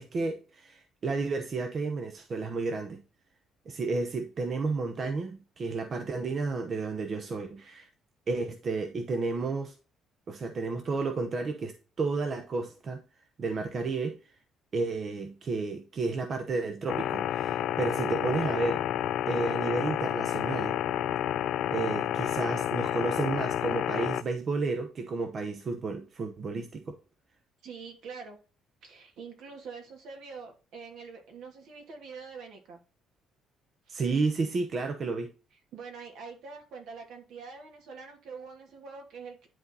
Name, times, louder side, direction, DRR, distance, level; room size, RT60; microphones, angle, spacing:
voice 1, 0.0-3.0 3.7-7.9 8.3-9.7 10.3-13.0 13.4-14.3 14.7-18.8 19.3-20.8 21.7-27.0 33.9-35.3, right 3 dB, 30° right, 0.9 m, -32 dB
sound 1, 16.9-24.2, left 11 dB, 60° left, 0.5 m, -30 dB
voice 2, 27.6-28.4 28.8-32.8 33.9-34.0 35.7-39.5, right 5 dB, 65° right, 2.9 m, -45 dB
10.5 x 4.1 x 4.1 m
cardioid pair, 170°, 0 cm